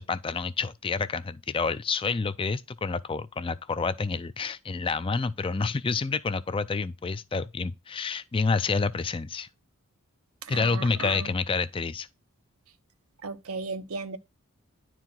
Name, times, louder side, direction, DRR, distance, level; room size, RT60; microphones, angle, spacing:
voice 1, 0.0-9.5 10.5-12.1, left 4 dB, 25° left, 0.4 m, -28 dB
voice 2, 10.4-11.3 13.2-14.2, right 4 dB, 80° right, 0.8 m, -35 dB
10.5 x 4.6 x 3.8 m
head